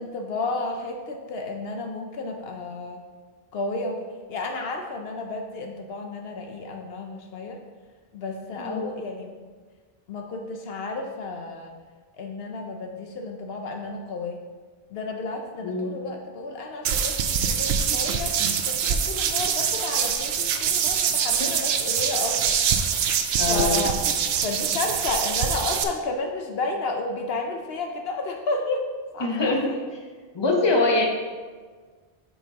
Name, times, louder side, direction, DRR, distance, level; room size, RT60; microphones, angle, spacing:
voice 1, 0.0-3.0 3.5-7.6 8.1-9.3 10.1-11.7 12.1-14.4 14.9-18.4 18.6-22.6 23.5-24.0 24.4-28.8 29.1-29.5, left 3 dB, 70° left, 3 dB, 0.9 m, -32 dB
voice 2, 8.6-8.9 15.6-15.9 21.4-21.5 23.4-23.8 29.2-29.7 30.3-31.1, left 2 dB, 25° left, 0 dB, 0.9 m, -23 dB
sound 1, 16.8-25.8, right 7 dB, 75° right, 0.8 m, -24 dB
8.5 x 5.6 x 2.8 m, 1.5 s
omnidirectional pair, 1.1 m